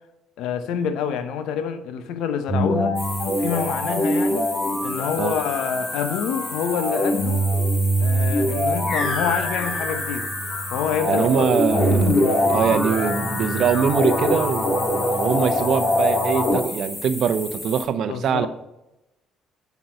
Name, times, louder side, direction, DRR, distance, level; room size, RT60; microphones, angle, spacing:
voice 1, 0.4-3.0 3.4-4.5 4.8-7.4 8.0-10.3 10.7-11.5 18.1-18.5, left 7 dB, 75° left, 1.0 m, -27 dB
sound 1, 2.5-16.6, equal, 50° left, 2.8 m, -23 dB
sound 2, 3.0-17.9, left 2 dB, 20° left, 1.7 m, -34 dB
voice 2, 11.1-12.1 12.5-18.5, right 7 dB, 65° right, 0.7 m, -23 dB
8.3 x 6.1 x 5.2 m
hypercardioid pair, 60°, 0 cm